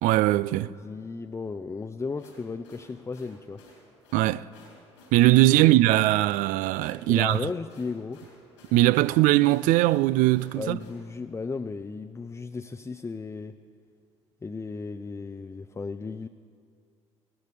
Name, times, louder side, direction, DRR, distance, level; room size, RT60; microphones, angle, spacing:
voice 1, 0.0-0.7 4.1-4.5 5.1-7.4 8.7-10.8, right 16 dB, 65° right, 0.4 m, -20 dB
voice 2, 0.7-3.6 5.6-5.7 7.1-8.2 10.6-13.6 14.4-16.3, left 4 dB, 20° left, 0.5 m, -35 dB
sound 1, 2.0-11.0, left 2 dB, 85° left, 3.8 m, -54 dB
20.5 x 17.0 x 3.4 m
hypercardioid pair, 50°, 15 cm